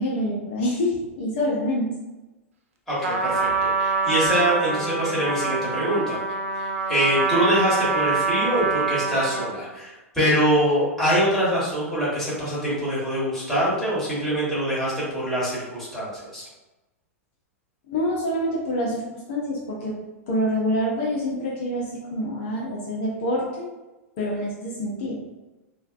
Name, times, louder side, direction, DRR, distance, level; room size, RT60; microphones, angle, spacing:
voice 1, 0.0-1.9 17.9-20.0 20.3-23.7 24.2-25.2, equal, 50° left, -5 dB, 0.6 m, -26 dB
voice 2, 2.9-6.2 6.5-16.4, equal, 5° left, -10 dB, 1.5 m, -24 dB
Trumpet, 3.0-9.6, right 4 dB, 65° right, 0.4 m, -25 dB
3.2 x 2.3 x 2.5 m, 1.1 s
figure-of-eight pair, 95°, 8 cm